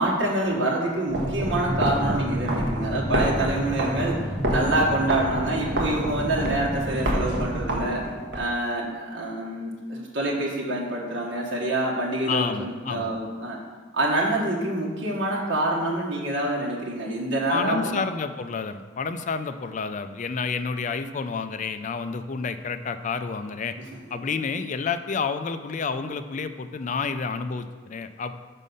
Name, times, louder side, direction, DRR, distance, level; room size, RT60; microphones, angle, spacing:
voice 1, 0.0-4.2 4.5-8.0 8.3-13.6 13.9-18.0 23.8-24.2, right 1 dB, 80° right, -4 dB, 1.4 m, -26 dB
sound 1, 1.1-8.4, right 1 dB, 65° right, 1.3 m, -27 dB
voice 2, 12.3-13.1 17.5-23.7 24.1-28.3, left 5 dB, 40° left, 10 dB, 0.4 m, -29 dB
6.3 x 5.5 x 5.5 m, 1.4 s
head